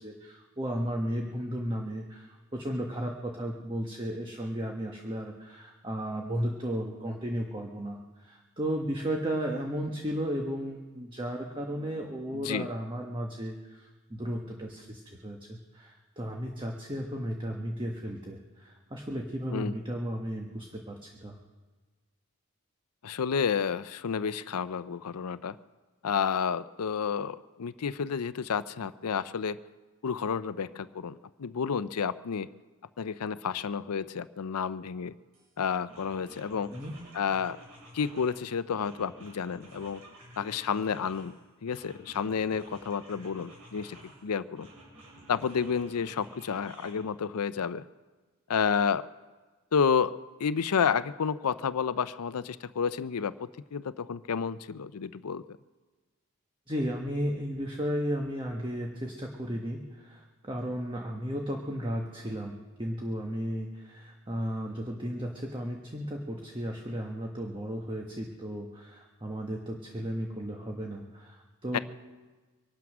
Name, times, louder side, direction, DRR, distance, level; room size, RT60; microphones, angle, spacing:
voice 1, 0.0-21.4 36.7-36.9 56.7-71.8, equal, 20° right, 1 dB, 1.3 m, -34 dB
voice 2, 12.3-12.7 19.5-19.7 23.0-25.6 26.0-29.6 30.0-32.5 33.0-35.2 35.6-36.7 37.1-37.6 37.9-40.0 40.4-41.3 41.6-44.0 44.2-44.7 45.3-47.8 48.5-49.1 49.7-50.1 50.4-55.4 71.7-71.8, left 6 dB, 85° left, 15 dB, 0.5 m, -30 dB
sound 1, 35.3-35.5 35.9-38.4 38.8-41.3 41.7-44.2 44.5-46.9, right 1 dB, 70° right, 6.3 m, -52 dB
24.0 x 9.4 x 6.1 m, 1.3 s
head